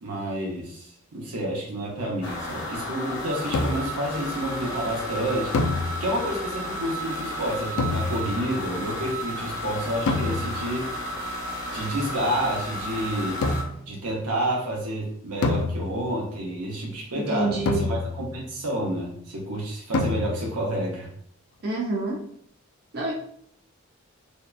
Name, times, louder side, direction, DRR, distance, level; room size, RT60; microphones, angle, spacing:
voice 1, 0.0-5.6 6.0-10.9 11.7-13.4 13.9-21.1, right 1 dB, 90° right, -1 dB, 0.8 m, -29 dB
sound 1, 2.2-13.6, equal, 50° left, 0.9 m, -33 dB
sound 2, 3.5-4.1 5.5-6.4 7.8-8.6 10.1-10.8 13.4-14.0 15.4-16.3 17.7-18.5 19.9-20.6, left 3 dB, 75° left, 0.3 m, -27 dB
voice 2, 17.1-17.9 21.6-22.2 22.9-23.1, right 2 dB, 45° right, -2 dB, 0.4 m, -27 dB
2.7 x 2.2 x 2.3 m, 0.64 s
head